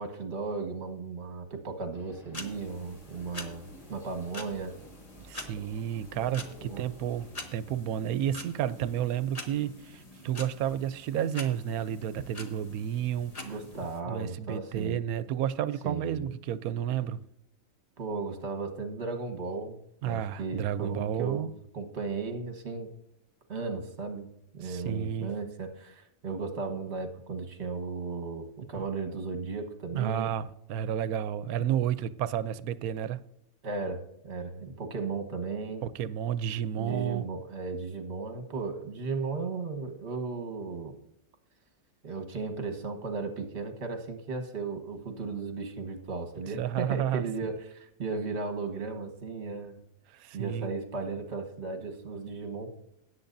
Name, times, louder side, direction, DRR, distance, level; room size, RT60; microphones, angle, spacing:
voice 1, 0.0-4.7 6.6-6.8 13.4-15.0 15.8-16.3 18.0-19.8 20.0-22.9 23.5-24.3 24.5-30.3 33.6-35.8 36.8-40.9 42.0-49.8 50.3-52.7, right 4 dB, 50° right, 1.6 m, -35 dB
sound 1, 1.9-7.4, equal, ahead, 4.0 m, -52 dB
sound 2, 2.3-14.0, left 2 dB, 30° left, 1.2 m, -46 dB
voice 2, 5.2-13.5 14.0-17.2 20.0-21.5 24.6-25.3 28.8-28.9 29.9-33.2 35.8-37.3 46.5-47.3 50.1-50.7, right 10 dB, 80° right, 1.1 m, -31 dB
17.5 x 8.2 x 2.6 m
omnidirectional pair, 1.5 m